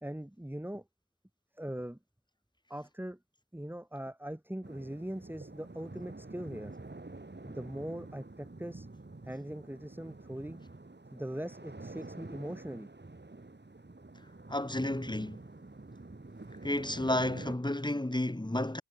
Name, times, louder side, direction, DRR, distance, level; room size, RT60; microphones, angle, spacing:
voice 1, 0.0-0.9 1.5-2.0 2.7-3.2 3.5-6.7 7.4-8.9 9.2-10.6 11.1-12.9, right 1 dB, 5° right, 2.1 m, -41 dB
sound 1, 4.6-17.6, right 2 dB, 30° right, 5.5 m, -48 dB
voice 2, 14.5-15.4 16.6-18.8, left 1 dB, 10° left, 2.7 m, -31 dB
wide cardioid pair, 80°, 35 cm